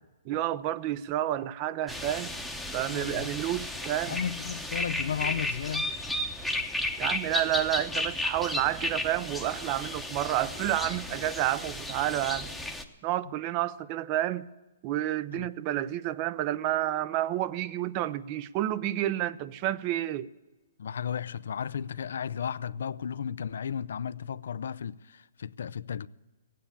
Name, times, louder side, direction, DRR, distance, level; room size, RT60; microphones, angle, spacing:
voice 1, 0.3-2.3 2.7-4.2 7.0-12.5 13.0-14.5 14.8-20.3, right 13 dB, 35° right, 0.5 m, -30 dB
sound 1, 1.9-12.8, left 1 dB, ahead, 0.9 m, -34 dB
voice 2, 2.9-3.3 4.1-5.9 15.3-15.5 20.8-26.1, left 8 dB, 75° left, 0.4 m, -34 dB
16.0 x 9.3 x 8.4 m
hypercardioid pair, 145°, 0 cm